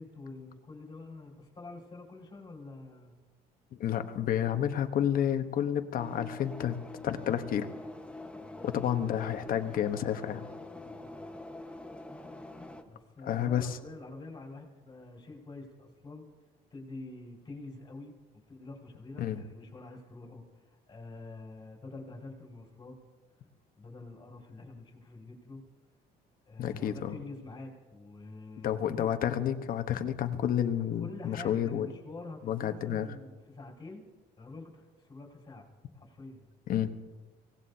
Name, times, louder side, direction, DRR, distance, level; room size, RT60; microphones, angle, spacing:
voice 1, 0.0-3.2 8.3-8.6 8.9-9.1 10.8-11.3 12.8-16.2 16.7-18.1 18.5-23.0 23.4-23.5 23.8-25.6 26.5-29.2 31.0-34.0 34.4-35.7 36.0-36.5, left 3 dB, 25° left, -1 dB, 5.3 m, -47 dB
voice 2, 3.8-6.8 7.0-7.7 8.6-10.4 13.2-13.8 19.2-19.4 26.6-27.2 28.6-31.9 32.4-33.1 36.7-36.9, left 10 dB, 60° left, 8 dB, 1.2 m, -30 dB
sound 1, 6.0-12.8, left 2 dB, 5° left, 1.3 m, -45 dB
24.5 x 18.0 x 2.9 m, 1.2 s
cardioid pair, 110°, 17 cm